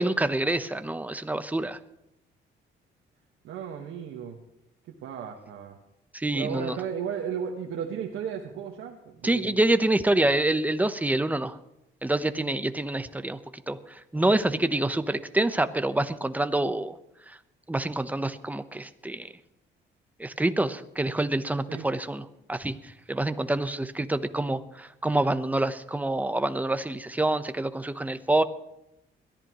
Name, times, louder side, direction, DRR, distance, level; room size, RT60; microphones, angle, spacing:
voice 1, 0.0-1.8 6.1-6.8 9.2-11.6 12.0-13.4 13.7-17.0 17.3-17.4 17.7-19.3 20.2-28.4, right 2 dB, 10° right, 11 dB, 0.9 m, -27 dB
voice 2, 3.4-4.4 4.9-5.8 6.3-9.5 21.7-21.9, right 7 dB, 90° right, 0 dB, 1.6 m, -35 dB
21.5 x 14.0 x 3.1 m, 0.87 s
cardioid pair, 90°, 20 cm